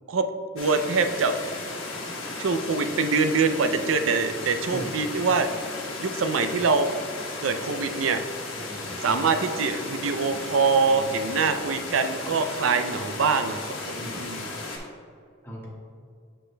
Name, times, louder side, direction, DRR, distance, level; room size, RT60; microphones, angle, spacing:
voice 1, 0.5-1.3 2.4-5.5 6.0-6.9 7.4-8.2 9.0-13.6 13.9-14.5, right 4 dB, 80° right, 8 dB, 0.4 m, -24 dB
sound 1, 0.6-14.8, left 2 dB, 80° left, 1.2 m, -35 dB
voice 2, 8.6-9.1 10.9-11.0 11.4-11.5 13.9-14.2 15.4-15.7, equal, 10° left, -6 dB, 1.5 m, -39 dB
7.6 x 6.4 x 2.2 m, 2.2 s
head